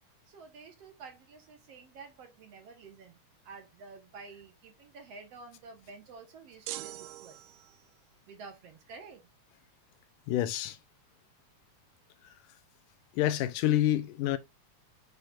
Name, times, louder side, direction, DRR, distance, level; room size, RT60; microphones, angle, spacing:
voice 1, 0.3-3.2 3.4-7.4 8.3-9.2, right 4 dB, 60° right, 2.0 m, -50 dB
sound 1, 6.7-8.0, right 15 dB, 85° right, 2.1 m, -42 dB
voice 2, 10.3-10.8 13.1-14.4, left 13 dB, 90° left, 2.3 m, -27 dB
8.0 x 5.2 x 2.5 m
omnidirectional pair, 3.7 m